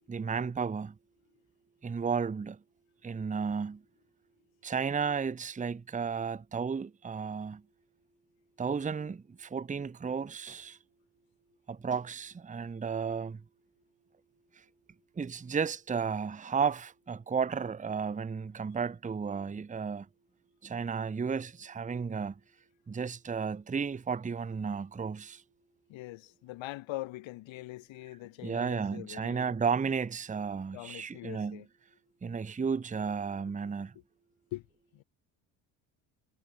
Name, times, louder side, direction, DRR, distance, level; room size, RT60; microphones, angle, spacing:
voice 1, 0.1-0.9 1.8-2.6 3.0-3.8 4.6-7.6 8.6-10.8 11.7-13.4 15.2-20.1 20.6-22.4 22.9-25.4 28.4-31.6 32.2-33.9, right 6 dB, 15° right, 0.8 m, -33 dB
voice 2, 25.9-29.6 30.7-31.7 33.4-33.5 34.5-34.7 34.9-35.0, left 18 dB, 70° left, 6.3 m, -42 dB
supercardioid pair, 80°, 47 cm